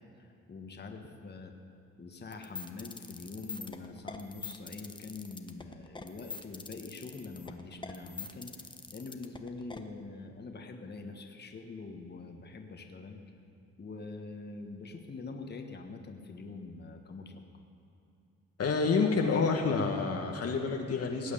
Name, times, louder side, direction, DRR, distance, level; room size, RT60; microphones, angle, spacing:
voice 1, 0.2-1.5 2.0-13.2 13.8-17.4, left 3 dB, 35° left, 4 dB, 1.5 m, -44 dB
sound 1, 2.3-9.8, left 4 dB, 15° left, 0.9 m, -43 dB
voice 2, 18.6-21.3, left 4 dB, 55° left, 2 dB, 1.4 m, -28 dB
18.5 x 6.4 x 9.0 m, 2.6 s
cardioid pair, 90°, 30 cm